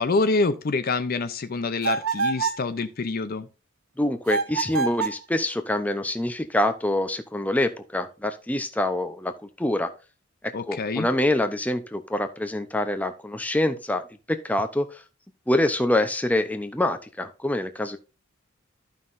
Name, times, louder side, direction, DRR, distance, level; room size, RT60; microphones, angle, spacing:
voice 1, 0.0-3.5 10.5-11.1, left 3 dB, 45° left, 0.5 m, -26 dB
sound 1, 1.8-2.7 4.3-5.2, right 5 dB, 90° right, 1.0 m, -26 dB
voice 2, 4.0-9.9 10.4-15.0 15.5-18.0, left 1 dB, 5° left, 0.6 m, -25 dB
13.0 x 5.6 x 2.6 m
head